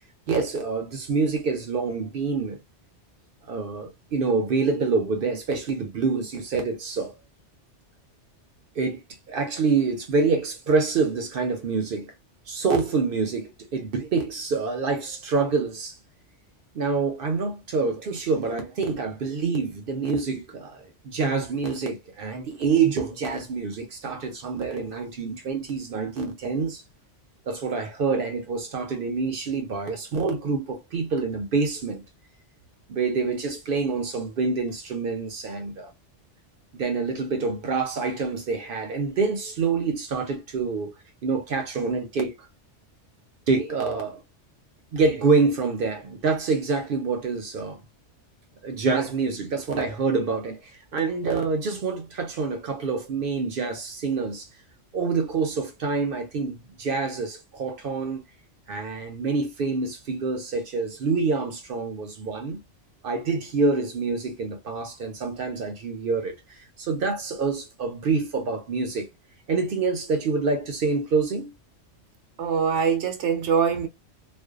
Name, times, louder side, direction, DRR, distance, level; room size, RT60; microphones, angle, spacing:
voice 1, 0.3-2.6 3.5-7.1 8.8-9.0 9.3-12.1 12.5-16.0 16.7-26.8 27.5-32.0 32.9-35.9 36.7-41.0 41.2-42.5 43.5-44.2 44.9-47.8 48.6-54.5 54.9-58.2 58.7-62.6 63.0-69.1 69.5-71.5, right 4 dB, 60° right, 0.7 m, -26 dB
voice 2, 72.4-73.9, right 6 dB, 80° right, 0.9 m, -23 dB
2.5 x 2.2 x 2.3 m
omnidirectional pair, 1.2 m